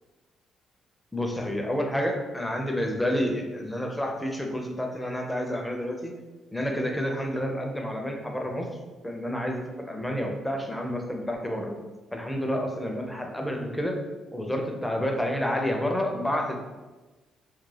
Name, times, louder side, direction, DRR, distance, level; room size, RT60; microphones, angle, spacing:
voice 1, 1.1-6.1 6.5-8.7 9.0-11.7 12.1-14.0 14.3-16.7, equal, 5° left, 2 dB, 0.5 m, -29 dB
2.3 x 2.0 x 3.2 m, 1.2 s
cardioid pair, 90°, 0 cm